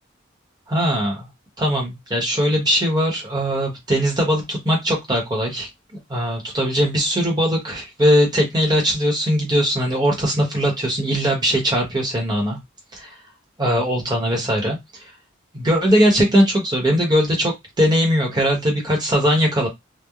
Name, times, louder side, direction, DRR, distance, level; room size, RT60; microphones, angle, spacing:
voice 1, 0.7-1.3 1.6-5.7 6.1-12.6 12.9-13.2 13.6-15.1 15.5-19.7, equal, 20° right, 0.9 m, -20 dB
2.9 x 2.0 x 2.3 m
head